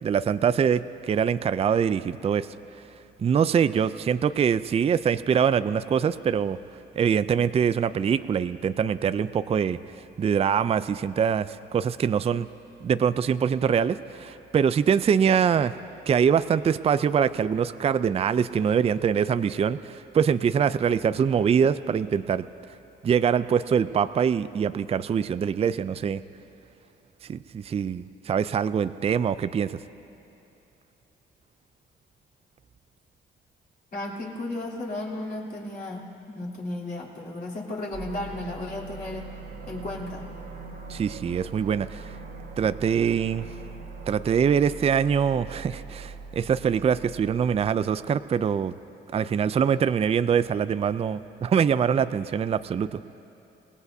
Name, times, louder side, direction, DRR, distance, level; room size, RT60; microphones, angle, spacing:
voice 1, 0.0-2.5 3.2-6.6 7.0-9.8 10.2-12.5 12.8-15.7 16.1-22.4 23.0-26.2 27.3-29.8 40.9-42.1 42.6-43.5 44.1-48.7 49.1-53.0, right 7 dB, 30° right, 14 dB, 0.4 m, -24 dB
voice 2, 33.9-39.3 39.7-40.3, left 2 dB, 45° left, -4 dB, 3.2 m, -34 dB
sound 1, 37.9-47.6, right 4 dB, 55° right, 1.6 m, -41 dB
28.0 x 17.5 x 2.7 m, 2.9 s
cardioid pair, 90°, 20 cm